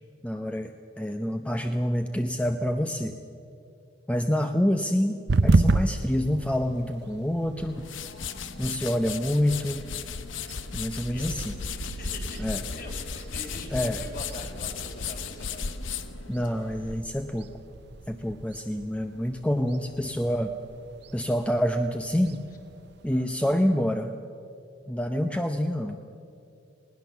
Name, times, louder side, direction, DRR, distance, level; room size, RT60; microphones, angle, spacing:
voice 1, 0.2-3.2 4.1-7.9 8.6-9.9 10.7-11.5 12.4-12.6 13.7-14.0 16.3-17.5 18.1-20.5 21.1-22.4 23.0-24.1 24.9-26.0, equal, 5° left, 6 dB, 0.6 m, -27 dB
sound 1, 5.3-23.1, right 3 dB, 60° right, 0.6 m, -33 dB
sound 2, 7.6-17.0, left 5 dB, 90° left, 1.0 m, -36 dB
voice 2, 10.9-15.7 23.1-23.3, left 2 dB, 45° left, 1 dB, 3.8 m, -43 dB
20.0 x 18.0 x 7.1 m, 2.6 s
head